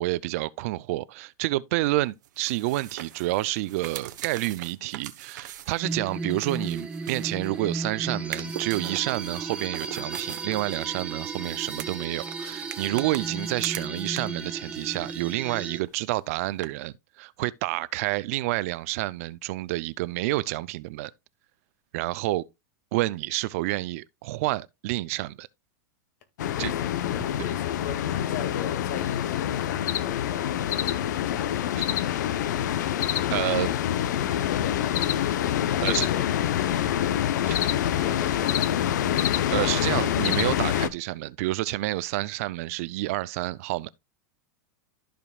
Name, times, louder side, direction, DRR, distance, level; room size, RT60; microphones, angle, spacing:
voice 1, 0.0-21.1 21.9-22.4 22.9-25.5 26.6-26.7 33.3-33.7 35.8-36.1 37.5-37.6 39.5-43.9, right 18 dB, 50° right, 0.4 m, -29 dB
sound 1, 2.2-7.7 8.2-14.5 14.7-15.6 15.9-16.0 16.6-16.7, right 12 dB, 85° right, 1.0 m, -42 dB
sound 2, 5.8-15.8, right 3 dB, 10° right, 1.2 m, -35 dB
sound 3, 26.4-40.9, left 11 dB, 80° left, 0.8 m, -26 dB
voice 2, 26.4-31.5 33.5-33.7 34.4-35.1 35.7-37.4 37.9-39.2, left 8 dB, 60° left, 2.0 m, -40 dB
13.5 x 5.1 x 2.3 m
supercardioid pair, 155°, 10 cm